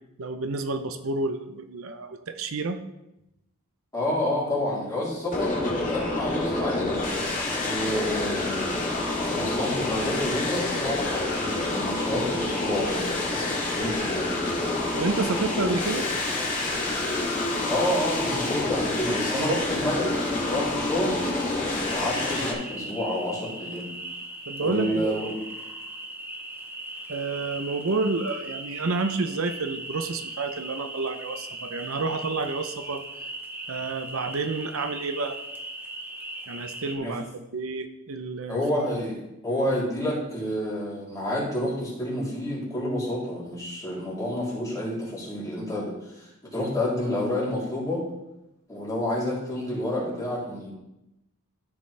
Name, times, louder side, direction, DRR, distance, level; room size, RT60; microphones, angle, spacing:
voice 1, 0.2-2.8 15.0-16.1 24.5-25.2 27.1-33.0 33.7-35.4 36.5-37.3 37.5-38.6, right 3 dB, 70° right, 8 dB, 0.6 m, -29 dB
voice 2, 3.9-7.0 7.6-8.9 9.3-14.4 17.7-21.2 21.8-23.9 24.6-25.3 37.0-37.1 38.5-39.2 39.4-46.2 46.5-48.0 48.7-50.7, left 1 dB, 15° left, -7 dB, 3.4 m, -29 dB
sound 1, 5.3-22.5, left 2 dB, 40° left, 2.0 m, -28 dB
sound 2, 21.9-37.0, right 1 dB, 10° right, 0.9 m, -39 dB
13.5 x 6.0 x 3.3 m, 0.89 s
head